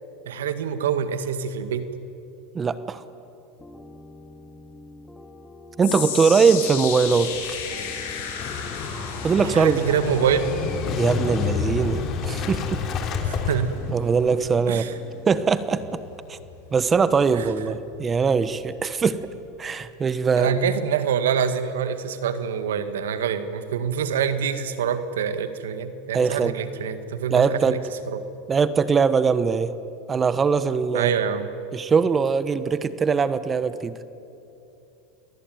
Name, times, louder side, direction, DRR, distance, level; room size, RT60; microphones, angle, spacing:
voice 1, 0.3-1.9 9.4-10.5 13.2-13.7 14.7-15.0 17.3-17.5 20.4-27.8 28.1-28.3 30.9-31.5, right 7 dB, 90° right, 11 dB, 1.9 m, -25 dB
voice 2, 2.5-3.0 5.8-7.3 9.2-9.8 11.0-12.6 13.9-14.9 15.3-16.0 16.3-16.4 16.7-19.3 19.6-20.6 26.1-26.6 27.3-27.8 28.5-29.7 30.1-31.1 31.7-34.0, right 5 dB, 20° right, 14 dB, 1.1 m, -21 dB
sound 1, 3.6-15.4, left 2 dB, 5° left, 2.1 m, -46 dB
sound 2, 5.8-18.1 18.4-18.8 19.4-19.5, left 7 dB, 75° left, 6.6 m, -35 dB
Motorcycle / Engine starting, 7.3-14.6, left 5 dB, 40° left, 3.4 m, -29 dB
28.5 x 19.5 x 9.4 m, 2.8 s
supercardioid pair, 120°, 0 cm